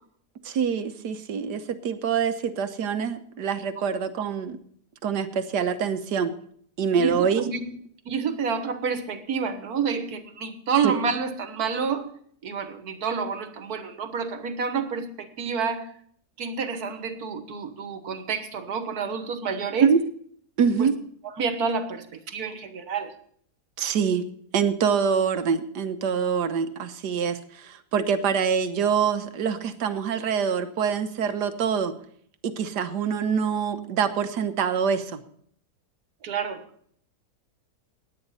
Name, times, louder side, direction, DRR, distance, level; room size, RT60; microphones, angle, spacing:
voice 1, 0.4-4.6 5.0-6.3 6.8-7.4 10.8-10.9 19.8-20.0 20.6-21.0 23.8-24.2 24.5-31.9 32.4-35.2, right 6 dB, 85° right, 10 dB, 1.6 m, -25 dB
voice 2, 7.0-7.7 8.1-12.1 12.4-15.9 16.4-19.9 20.8-20.9 21.2-23.1 36.2-36.6, right 6 dB, 65° right, 9 dB, 1.7 m, -29 dB
17.0 x 9.9 x 4.1 m, 0.62 s
omnidirectional pair, 1.7 m